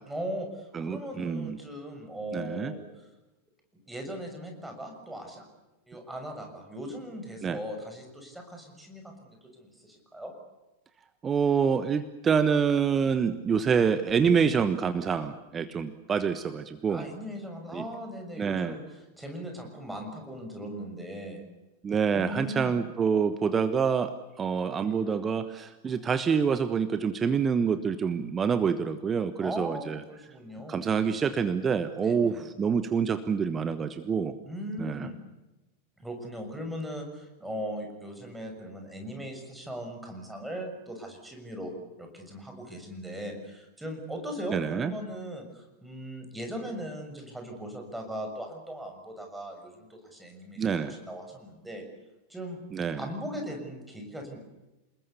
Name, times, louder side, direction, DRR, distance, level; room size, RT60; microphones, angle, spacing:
voice 1, 0.0-3.1 3.7-5.5 5.9-10.3 16.9-21.4 22.1-22.8 29.4-30.9 32.0-32.5 34.4-35.2 36.0-41.7 42.0-51.8 52.3-52.6 53.0-54.4, equal, 5° right, 4 dB, 6.6 m, -39 dB
voice 2, 0.7-1.6 2.3-2.7 7.4-7.6 11.2-17.1 17.7-17.8 18.4-18.8 21.8-30.0 30.7-34.3 34.8-35.1 44.5-44.9 50.6-51.0 52.7-53.1, right 6 dB, 20° right, 11 dB, 1.2 m, -27 dB
28.5 x 21.0 x 7.0 m, 1.0 s
figure-of-eight pair, 90°, 0 cm